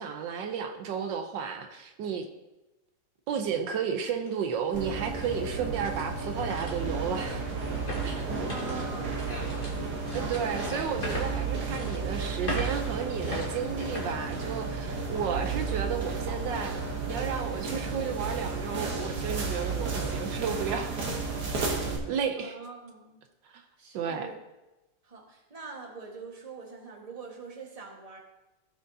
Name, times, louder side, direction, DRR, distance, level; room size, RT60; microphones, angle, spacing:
voice 1, 0.0-2.3 3.3-7.5 8.0-8.3 10.1-16.7 17.0-20.9 22.1-22.6 23.5-23.6 23.9-24.3, right 7 dB, 80° right, 6 dB, 1.4 m, -33 dB
sound 1, 3.4-3.5 4.1-15.0 15.4-15.5 16.1-16.4, left 1 dB, 30° left, 1.9 m, -41 dB
sound 2, 4.7-22.0, right 4 dB, 65° right, 1.8 m, -33 dB
voice 2, 8.4-10.0 22.4-23.2 23.8-24.4 25.0-28.2, right 4 dB, 20° right, -1 dB, 1.4 m, -44 dB
16.0 x 6.2 x 2.7 m, 1.0 s
omnidirectional pair, 2.0 m